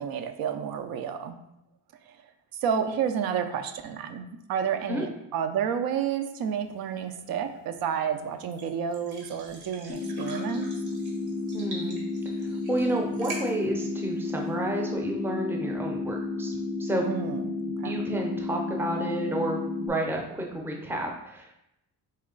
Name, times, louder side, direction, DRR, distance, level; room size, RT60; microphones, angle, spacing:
voice 1, 0.0-1.4 2.0-2.2 2.5-10.7 17.0-17.9, right 7 dB, 70° right, 7 dB, 0.5 m, -30 dB
sound 1, 6.4-14.9, right 2 dB, 85° right, 1.5 m, -46 dB
sound 2, 9.9-19.9, left 3 dB, 40° left, 0.6 m, -32 dB
voice 2, 11.5-12.0 12.4-17.1 17.8-21.5, right 1 dB, 5° right, 1 dB, 0.5 m, -31 dB
4.2 x 3.1 x 3.7 m, 0.85 s
cardioid pair, 150°, 37 cm